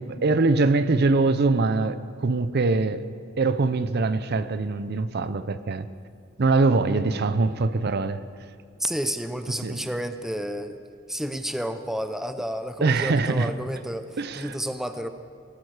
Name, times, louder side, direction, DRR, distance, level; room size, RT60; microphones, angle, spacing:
voice 1, 0.0-3.1 3.4-5.9 6.4-8.2 9.6-9.9 12.8-13.5 14.2-14.6, right 3 dB, 55° right, 0.6 m, -23 dB
voice 2, 8.8-10.8 11.1-15.1, equal, ahead, 0.5 m, -31 dB
19.0 x 14.0 x 4.9 m
head